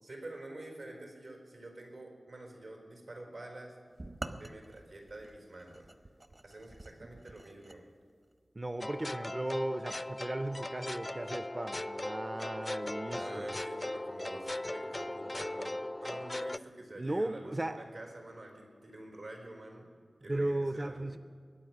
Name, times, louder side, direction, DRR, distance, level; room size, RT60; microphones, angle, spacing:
voice 1, 0.0-3.7 4.4-5.9 6.4-7.8 13.1-19.9 20.2-21.1, right 2 dB, 90° right, 1 dB, 4.3 m, -47 dB
sound 1, 4.0-7.8, right 2 dB, 50° right, 1.0 m, -47 dB
voice 2, 8.6-13.5 16.9-17.8 20.3-21.2, right 1 dB, 35° right, 10 dB, 0.5 m, -36 dB
sound 2, 8.8-16.6, left 1 dB, 30° left, 0.4 m, -38 dB
22.5 x 9.3 x 6.1 m, 2.1 s
wide cardioid pair, 60°, 0 cm